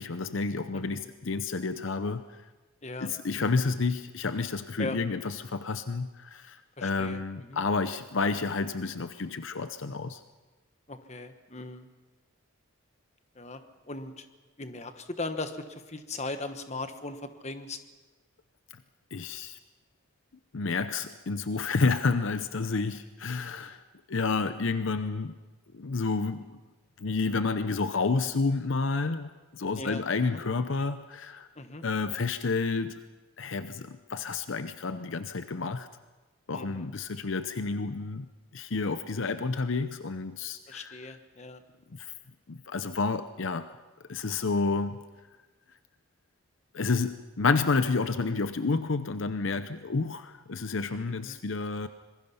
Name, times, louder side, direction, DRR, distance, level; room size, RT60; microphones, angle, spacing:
voice 1, 0.0-2.4 3.0-10.2 19.1-19.6 20.5-23.8 24.1-25.4 25.7-26.6 27.0-31.5 31.8-33.0 33.4-35.9 36.5-38.3 38.5-41.0 41.9-42.1 42.5-43.7 44.1-45.0 46.7-51.9, left 4 dB, 65° left, 11 dB, 0.7 m, -30 dB
voice 2, 2.8-3.6 4.8-5.0 6.8-7.6 10.9-11.9 13.3-14.2 14.6-17.8 29.8-30.0 30.3-30.4 31.6-31.8 36.5-36.8 40.7-41.6 51.1-51.4, left 2 dB, 30° left, 8 dB, 1.3 m, -39 dB
26.0 x 21.5 x 5.7 m, 1.2 s
head